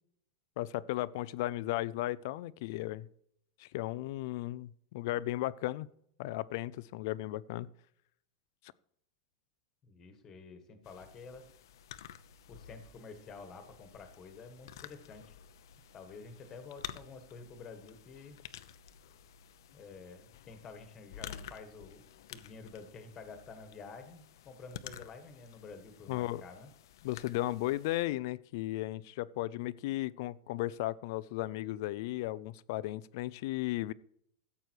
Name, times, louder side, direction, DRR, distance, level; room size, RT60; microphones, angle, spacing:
voice 1, 0.6-3.1 3.6-5.9 6.2-7.7 26.1-26.4 27.0-33.9, left 16 dB, 45° left, 18 dB, 0.4 m, -35 dB
voice 2, 9.8-11.5 12.5-15.3 15.9-18.4 19.7-26.7, left 4 dB, 20° left, 8 dB, 1.5 m, -50 dB
sound 1, 10.8-28.0, left 10 dB, 70° left, 0.7 m, -51 dB
14.0 x 8.3 x 4.6 m, 0.71 s
supercardioid pair, 180°, 2 cm